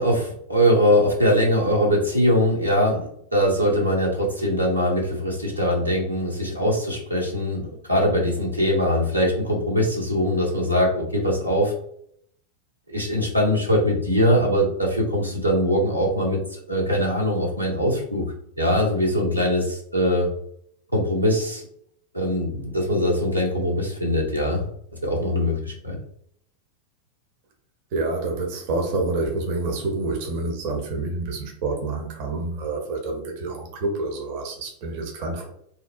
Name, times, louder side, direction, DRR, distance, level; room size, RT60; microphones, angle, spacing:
voice 1, 0.0-3.0 3.3-7.6 7.9-11.7 12.9-18.2 18.6-20.3 20.9-21.6 22.1-24.7 25.0-26.0, equal, 90° right, -3 dB, 0.6 m, -22 dB
voice 2, 27.9-35.5, right 3 dB, 45° right, 2 dB, 0.5 m, -28 dB
2.7 x 2.0 x 2.4 m, 0.68 s
figure-of-eight pair, 90°, 0 cm